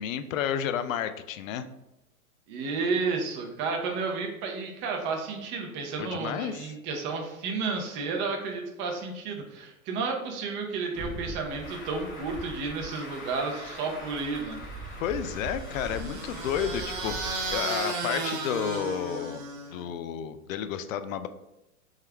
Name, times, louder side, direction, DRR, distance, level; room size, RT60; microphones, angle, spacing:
voice 1, 0.0-1.7 6.0-6.7 15.0-19.4 19.7-21.3, left 9 dB, 65° left, 11 dB, 0.5 m, -31 dB
voice 2, 2.5-14.6, right 4 dB, 25° right, 2 dB, 0.7 m, -32 dB
Truck, 10.9-17.6, right 1 dB, 20° left, 0.9 m, -40 dB
sound 1, 15.3-19.8, right 4 dB, 60° right, 1.0 m, -34 dB
3.6 x 3.2 x 3.3 m, 0.94 s
hypercardioid pair, 125°, 44 cm